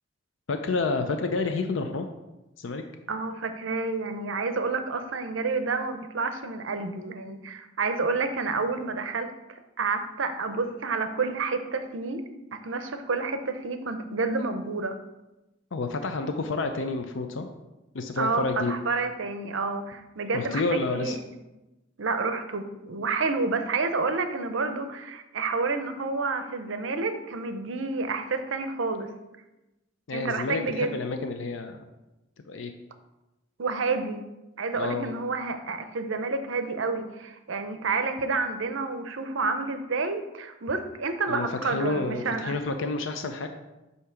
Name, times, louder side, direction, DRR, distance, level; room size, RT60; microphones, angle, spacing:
voice 1, 0.5-2.1 2.6-2.8 15.7-17.5 17.9-18.7 20.3-21.2 30.1-31.8 32.5-32.7 34.7-35.1 41.3-43.5, left 3 dB, 70° left, 6 dB, 0.5 m, -29 dB
voice 2, 3.1-9.3 9.8-12.2 12.5-15.0 18.2-21.2 22.0-29.1 30.1-31.0 33.6-34.2 34.6-42.5, right 4 dB, 70° right, 8 dB, 0.6 m, -29 dB
8.2 x 2.8 x 5.7 m, 1.0 s
head